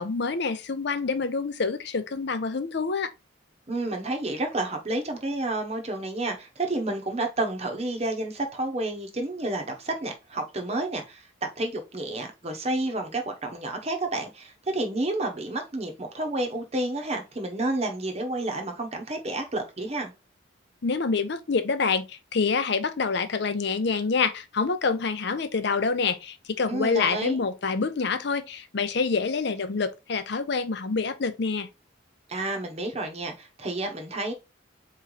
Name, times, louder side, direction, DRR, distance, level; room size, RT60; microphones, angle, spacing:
voice 1, 0.0-3.1 20.8-31.7, left 4 dB, 60° left, 0.6 m, -27 dB
voice 2, 3.7-20.1 26.7-27.4 32.3-34.3, right 2 dB, 35° right, 0.9 m, -30 dB
4.2 x 3.1 x 3.8 m
head